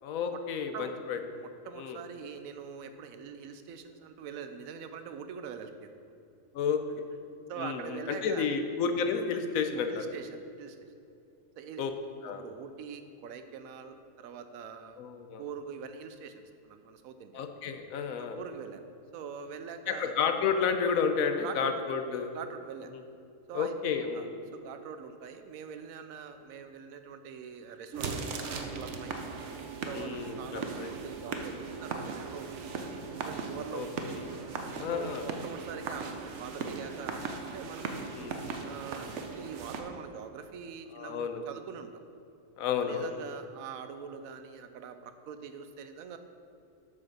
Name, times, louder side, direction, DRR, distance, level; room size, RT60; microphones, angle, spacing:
voice 1, 0.0-1.2 1.8-2.0 6.5-6.8 7.6-10.1 11.8-11.9 12.2-12.4 15.0-15.4 17.3-18.4 19.9-22.3 22.9-23.0 23.5-24.3 29.9-30.9 33.7-33.9 34.8-35.2 38.1-38.4 40.9-41.4 42.6-43.1, left 6 dB, 85° left, 7 dB, 1.1 m, -31 dB
voice 2, 1.4-5.9 6.9-7.0 7.5-8.5 9.9-10.9 11.6-15.0 15.4-17.4 18.2-18.8 19.1-20.1 21.4-21.8 22.3-22.9 23.5-23.8 24.1-24.3 24.5-29.2 29.8-32.9 33.2-34.1 34.9-38.0 38.6-42.0 42.8-46.2, right 6 dB, 90° right, 8 dB, 1.0 m, -43 dB
sound 1, 27.9-39.8, right 4 dB, 65° right, 1.0 m, -38 dB
8.2 x 5.0 x 6.0 m, 2.6 s
omnidirectional pair, 1.4 m